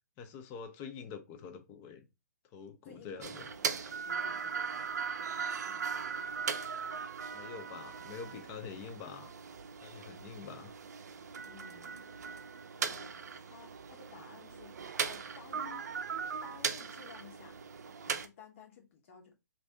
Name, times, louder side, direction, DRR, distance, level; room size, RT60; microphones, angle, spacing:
voice 1, 0.2-2.1 2.5-3.5 7.3-9.3 9.8-10.7, left 6 dB, 25° left, 0.5 m, -46 dB
voice 2, 2.8-6.3 11.5-12.1 12.4-12.5 12.8-15.8 16.4-17.6 18.0-19.3, left 6 dB, 45° left, 1.0 m, -55 dB
sound 1, 3.2-18.3, right 6 dB, 65° right, 0.5 m, -39 dB
2.6 x 2.5 x 3.3 m
hypercardioid pair, 135°, 10 cm